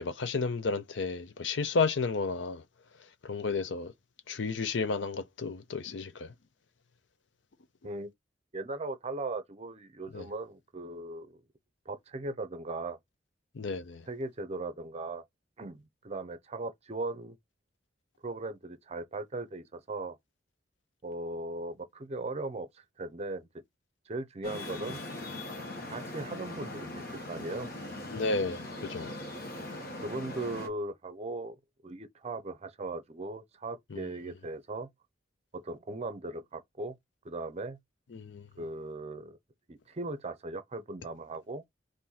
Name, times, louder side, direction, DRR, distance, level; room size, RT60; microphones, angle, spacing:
voice 1, 0.0-2.6 3.2-3.9 4.3-6.3 10.1-10.3 13.5-14.0 28.1-29.1 33.9-34.0 38.1-38.5, left 4 dB, 75° left, 0.6 m, -32 dB
voice 2, 8.5-11.3 11.9-13.0 14.1-15.2 15.6-17.4 18.2-20.2 21.0-23.5 24.1-25.0 25.8-27.7 30.0-31.6 31.8-34.9 35.5-37.0 37.2-37.8 38.6-39.4 39.7-41.6, right 2 dB, 35° right, 0.6 m, -38 dB
Traffic noise roadway noise, 24.4-30.7, left 1 dB, 55° left, 1.3 m, -40 dB
4.3 x 2.6 x 3.9 m
head